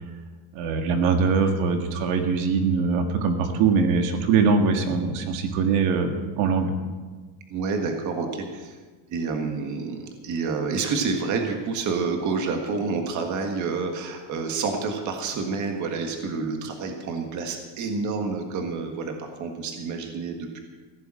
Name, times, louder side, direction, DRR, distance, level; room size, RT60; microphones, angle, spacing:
voice 1, 0.5-6.7, right 5 dB, 80° right, 5 dB, 2.0 m, -22 dB
voice 2, 7.5-8.8 9.1-20.6, right 4 dB, 35° right, 4 dB, 1.7 m, -28 dB
16.5 x 7.0 x 8.9 m, 1.3 s
cardioid pair, 180°, 49 cm